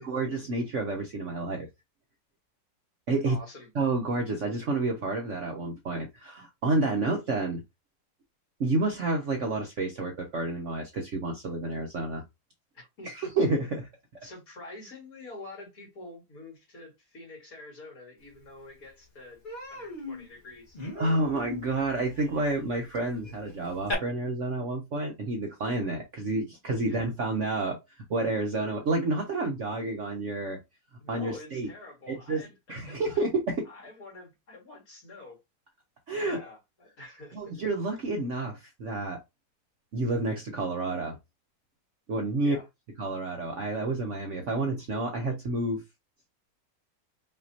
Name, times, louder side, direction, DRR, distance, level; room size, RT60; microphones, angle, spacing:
voice 1, 0.0-1.7 3.1-3.4 3.7-7.6 8.6-12.2 13.0-13.9 21.0-27.8 28.1-30.6 31.1-31.7 32.1-32.4 32.7-33.6 36.1-36.4 37.3-39.2 39.9-41.2 42.1-42.6 43.0-45.8, right 2 dB, 55° right, 0.9 m, -29 dB
voice 2, 3.3-3.7 12.7-13.3 14.2-19.4 19.7-20.8 26.9-27.0 31.0-33.2 33.7-35.4 36.3-37.6 42.4-42.7, left 2 dB, 50° left, 2.4 m, -47 dB
Human voice, 18.4-18.5 18.9-19.1 19.4-23.9, left 2 dB, 30° left, 1.6 m, -39 dB
5.4 x 2.8 x 2.7 m
omnidirectional pair, 2.0 m